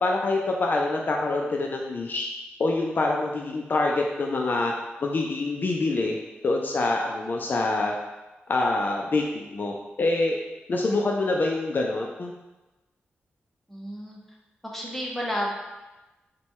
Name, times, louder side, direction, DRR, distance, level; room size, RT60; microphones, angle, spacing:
voice 1, 0.0-2.3 2.6-4.7 5.0-6.2 6.4-8.0 8.5-10.4 10.7-12.3, left 2 dB, 50° left, 0 dB, 0.4 m, -25 dB
voice 2, 13.7-14.2 14.6-15.5, equal, 5° left, -3 dB, 0.8 m, -31 dB
4.1 x 2.2 x 4.5 m, 1.1 s
cardioid pair, 85°, 4 cm